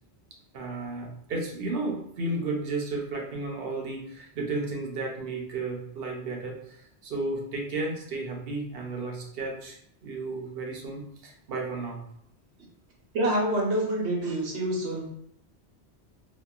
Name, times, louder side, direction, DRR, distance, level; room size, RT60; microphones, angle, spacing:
voice 1, 0.5-9.8 10.0-12.0, right 2 dB, 65° right, 0 dB, 0.7 m, -33 dB
voice 2, 13.1-15.0, right 1 dB, 90° right, -1 dB, 1.0 m, -27 dB
2.8 x 2.1 x 2.3 m, 0.71 s
omnidirectional pair, 1.1 m